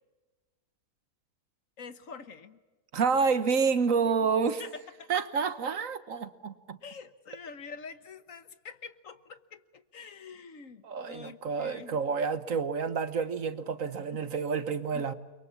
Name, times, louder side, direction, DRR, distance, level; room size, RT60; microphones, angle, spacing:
voice 1, 1.8-2.6 4.1-4.3 4.6-5.1 6.8-12.0 13.9-14.3 14.9-15.1, left 5 dB, 60° left, 12 dB, 1.6 m, -46 dB
voice 2, 2.9-4.6 5.1-6.8 10.8-15.1, right 5 dB, 65° right, 12 dB, 1.5 m, -29 dB
30.0 x 23.5 x 7.3 m, 1.2 s
omnidirectional pair, 1.6 m